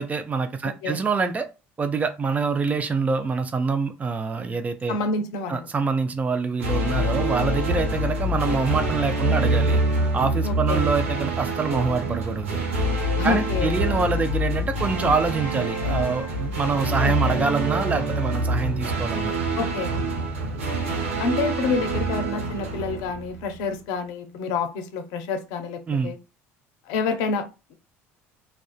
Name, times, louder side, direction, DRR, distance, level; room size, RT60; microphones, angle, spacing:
voice 1, 0.0-1.5 1.8-5.0 5.5-9.8 10.1-12.6 13.2-19.3 25.9-26.1, right 4 dB, 20° right, 0.4 m, -25 dB
voice 2, 4.9-5.7 10.4-10.8 13.2-13.7 17.0-17.4 19.6-19.9 21.2-26.2 26.9-27.4, left 4 dB, 70° left, 0.5 m, -28 dB
sound 1, 6.6-23.6, right 1 dB, 85° right, 0.7 m, -26 dB
2.4 x 2.2 x 2.4 m
hypercardioid pair, 65°, 7 cm